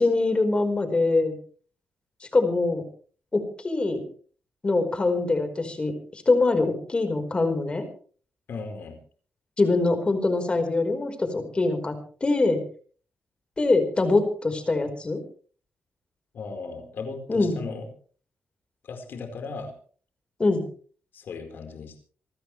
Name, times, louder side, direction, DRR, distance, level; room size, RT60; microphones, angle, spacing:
voice 1, 0.0-1.4 2.2-2.8 3.3-4.0 4.6-7.8 9.6-12.6 13.6-15.2 17.3-17.6 20.4-20.6, left 3 dB, 30° left, 8 dB, 4.7 m, -23 dB
voice 2, 8.5-9.0 16.3-17.9 18.8-19.7 21.1-22.0, left 4 dB, 70° left, 6 dB, 4.6 m, -36 dB
27.0 x 14.0 x 3.4 m, 0.43 s
cardioid pair, 90°, 4 cm